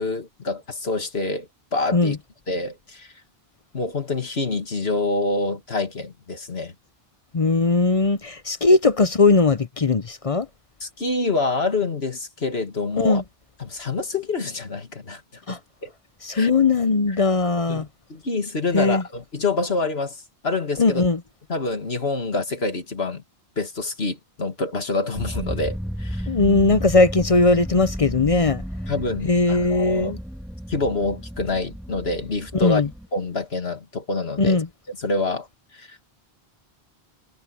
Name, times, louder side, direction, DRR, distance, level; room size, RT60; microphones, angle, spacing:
voice 1, 0.0-2.2 2.5-3.1 3.7-6.7 10.8-13.2 13.6-15.9 16.3-16.5 17.7-20.2 20.4-21.0 21.5-23.2 23.6-26.3 28.9-30.1 30.7-32.8 33.1-34.6 34.9-35.5 35.7-36.0, left 3 dB, 80° left, 2.5 m, -27 dB
voice 2, 7.3-10.5 13.0-13.2 15.5-15.6 16.2-17.9 18.7-19.0 20.8-21.2 26.3-28.6 29.2-30.2 32.5-32.9 34.4-34.7, left 3 dB, 40° left, 0.7 m, -19 dB
sound 1, 25.1-33.1, equal, ahead, 1.9 m, -33 dB
omnidirectional pair, 1.0 m